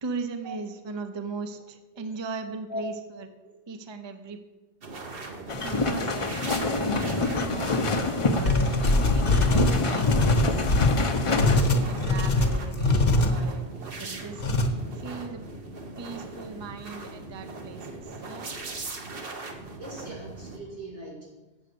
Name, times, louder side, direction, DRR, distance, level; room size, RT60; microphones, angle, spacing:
voice 1, 0.0-2.9 3.7-4.4 5.5-7.9 8.3-10.5 11.5-14.4 15.0-15.4 16.0-18.5, right 4 dB, 30° right, 9 dB, 0.6 m, -38 dB
voice 2, 2.5-2.8 19.8-21.3, right 1 dB, 90° right, -3 dB, 3.0 m, -40 dB
sound 1, 4.8-20.6, right 3 dB, 60° right, 1.3 m, -40 dB
sound 2, 5.5-11.6, left 3 dB, 35° left, 0.7 m, -27 dB
sound 3, 8.4-13.3 14.4-14.7, left 2 dB, 60° left, 1.3 m, -22 dB
8.2 x 7.3 x 6.7 m, 1.1 s
omnidirectional pair, 1.1 m